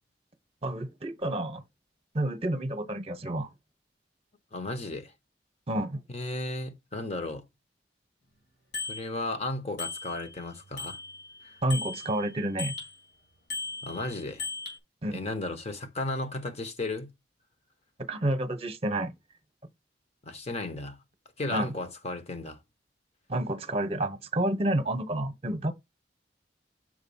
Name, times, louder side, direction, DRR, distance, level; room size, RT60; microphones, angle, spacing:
voice 1, 0.6-1.6 2.1-3.5 5.7-6.0 11.6-12.7 15.0-15.2 18.1-19.1 21.5-21.7 23.3-25.7, right 1 dB, 35° right, 1.0 m, -29 dB
voice 2, 4.5-5.1 6.1-7.4 8.9-11.0 13.8-14.5 15.1-17.1 20.2-21.0 21.4-22.6, left 2 dB, 40° left, 1.2 m, -34 dB
Bicycle bell, 8.7-9.0 9.8-10.4 10.8-12.9 13.5-14.8, left 4 dB, 70° left, 3.9 m, -37 dB
6.5 x 4.0 x 5.6 m
head